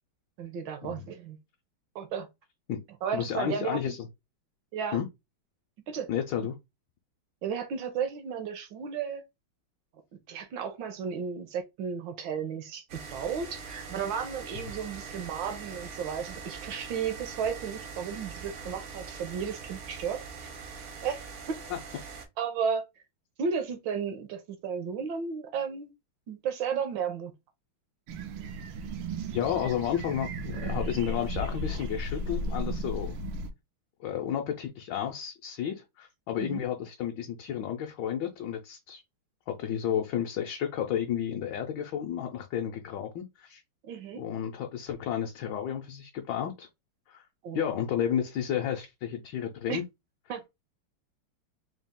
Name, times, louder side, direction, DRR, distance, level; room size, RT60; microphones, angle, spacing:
voice 1, 0.4-1.4 1.9-2.3 3.0-3.9 4.7-5.0 5.9-6.1 7.4-9.2 10.3-20.2 21.0-21.2 22.4-22.9 23.4-25.9 26.3-27.3 36.4-36.6 43.8-44.2 47.4-47.7 49.7-49.8 50.3-50.5, right 6 dB, 70° right, 1.3 m, -33 dB
voice 2, 3.1-4.0 4.9-5.1 6.1-6.6 21.7-21.8 29.3-33.2 34.0-39.0 39.5-43.6 44.2-46.7 47.1-47.3 47.5-49.8, left 9 dB, 70° left, 1.2 m, -32 dB
sound 1, 12.9-22.3, right 5 dB, 55° right, 0.8 m, -42 dB
sound 2, 28.1-33.5, right 1 dB, 90° right, 1.5 m, -35 dB
4.0 x 2.3 x 3.6 m
omnidirectional pair, 2.3 m